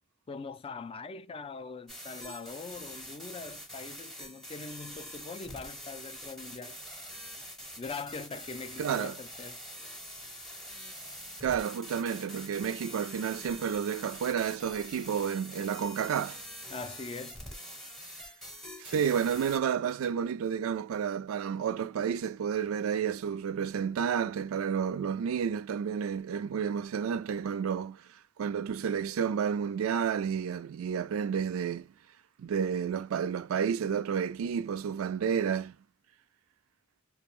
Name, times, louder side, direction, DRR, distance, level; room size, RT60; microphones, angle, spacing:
voice 1, 0.3-6.8 7.8-9.6 16.7-17.4, left 4 dB, 25° left, 0.3 m, -42 dB
sound 1, 1.9-19.6, equal, ahead, 0.7 m, -45 dB
voice 2, 8.8-9.2 11.4-16.4 18.8-28.0 28.4-31.9 32.4-35.8, right 7 dB, 80° right, 0.3 m, -31 dB
2.3 x 2.2 x 2.9 m
head